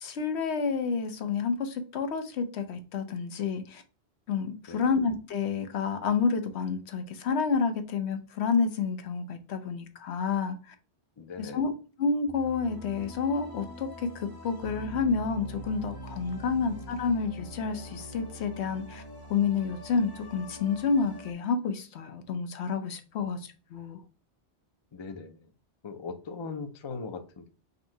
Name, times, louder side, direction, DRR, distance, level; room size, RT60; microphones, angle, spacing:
voice 1, 0.0-3.8 4.3-10.6 11.4-11.7 12.0-19.0 19.3-23.4 23.7-24.0, left 5 dB, 80° left, 8 dB, 1.0 m, -29 dB
voice 2, 11.2-11.6 23.2-23.3 24.9-25.4 25.8-27.5, left 4 dB, 40° left, 8 dB, 0.4 m, -39 dB
sound 1, 12.3-21.3, right 1 dB, 25° left, 0.8 m, -44 dB
3.9 x 2.7 x 4.4 m, 0.35 s
omnidirectional pair, 1.1 m